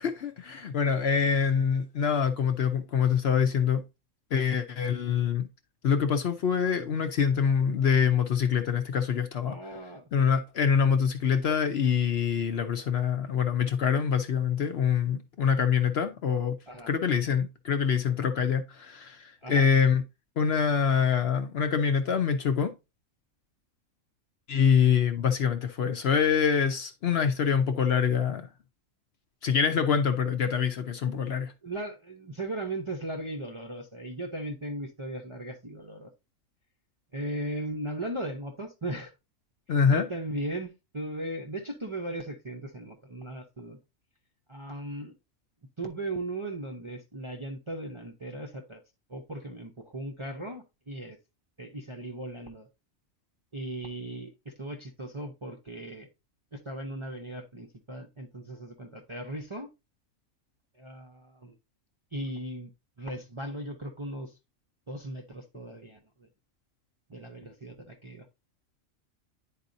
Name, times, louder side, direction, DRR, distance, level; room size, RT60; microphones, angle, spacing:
voice 1, 0.0-3.8 4.3-5.5 5.8-9.6 10.1-16.6 16.9-20.0 20.4-22.7 24.5-28.5 29.4-31.5 39.7-40.1, left 7 dB, 60° left, 0.8 m, -25 dB
voice 2, 9.5-10.0 16.7-16.9 19.4-19.7 31.1-31.2 31.6-36.1 37.1-39.1 39.9-43.8 44.5-45.2 45.8-48.8 49.1-51.2 51.6-52.7 53.5-56.1 56.5-59.7 60.7-61.6 62.1-62.7 63.0-64.4 64.9-66.3 67.1-68.3, right 1 dB, 30° right, 0.5 m, -37 dB
10.5 x 4.2 x 2.6 m
omnidirectional pair, 1.4 m